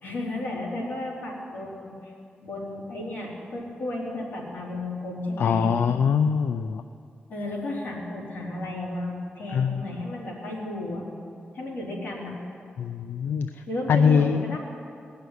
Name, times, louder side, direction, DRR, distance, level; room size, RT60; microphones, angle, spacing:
voice 1, 0.0-2.1 2.4-5.7 7.3-11.1 11.5-12.4 13.7-14.6, left 1 dB, 60° left, -4 dB, 3.8 m, -33 dB
voice 2, 5.4-6.8 9.5-9.8 12.8-13.6 13.9-14.6, left 6 dB, 85° left, 8 dB, 0.4 m, -23 dB
18.5 x 6.7 x 9.5 m, 2.4 s
wide cardioid pair, 175°, 4 cm